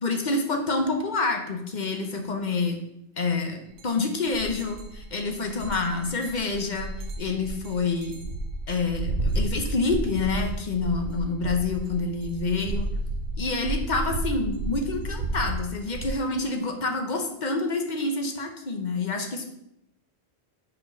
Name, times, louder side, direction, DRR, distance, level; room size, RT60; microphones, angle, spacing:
voice 1, 0.0-2.8 3.2-6.9 7.2-8.2 8.7-12.9 13.4-19.4, left 3 dB, 45° left, 4 dB, 0.9 m, -27 dB
sound 1, 3.8-3.9 4.3-16.1, right 2 dB, 80° right, 1.1 m, -32 dB
5.5 x 4.5 x 5.2 m, 0.80 s
omnidirectional pair, 1.1 m